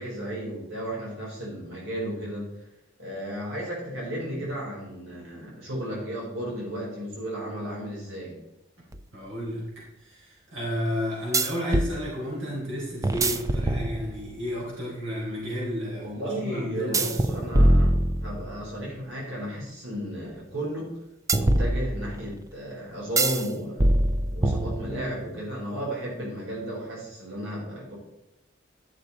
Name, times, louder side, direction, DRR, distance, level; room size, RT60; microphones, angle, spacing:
voice 1, 0.0-2.5 3.0-8.4 15.9-20.9 21.3-23.9 24.3-27.9, right 1 dB, 90° right, -4 dB, 4.1 m, -34 dB
sound 1, 8.9-9.0 11.3-12.0 13.0-14.3 16.9-18.6 21.3-22.3 23.2-23.5 23.8-25.2, right 1 dB, 15° right, 0.5 m, -23 dB
voice 2, 9.1-9.6 10.0-17.4 24.9-25.1, equal, 70° right, -5 dB, 4.0 m, -32 dB
11.5 x 6.5 x 4.1 m, 0.91 s
head